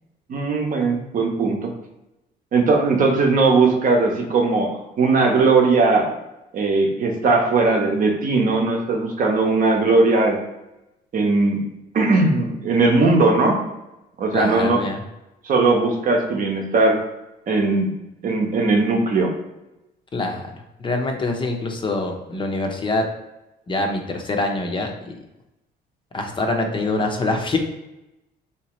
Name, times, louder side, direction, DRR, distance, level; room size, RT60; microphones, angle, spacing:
voice 1, 0.3-1.7 2.5-4.7 5.0-6.1 6.5-10.4 11.1-11.7 11.9-13.6 14.2-14.9 15.4-17.0 17.5-17.9 18.2-19.3, right 3 dB, 50° right, 2 dB, 0.8 m, -18 dB
voice 2, 14.3-15.0 20.1-20.5 20.8-23.0 23.7-25.1 26.1-27.6, left 2 dB, 30° left, 3 dB, 0.5 m, -24 dB
3.4 x 2.8 x 3.0 m, 0.94 s
cardioid pair, 120°, 18 cm